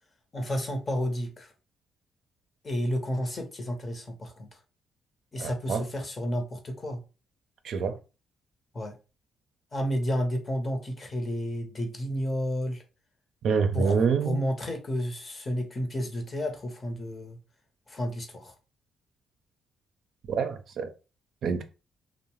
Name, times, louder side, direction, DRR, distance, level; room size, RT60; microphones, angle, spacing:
voice 1, 0.3-1.5 2.6-4.5 5.3-7.0 8.7-9.0 9.7-12.8 13.7-17.4 17.9-18.5, equal, 30° left, 0.8 m, -31 dB
voice 2, 5.4-5.8 7.6-7.9 13.4-14.4 20.3-20.9 21.4-21.6, right 6 dB, 65° right, 0.4 m, -26 dB
2.7 x 2.0 x 3.0 m
cardioid pair, 90°, 0 cm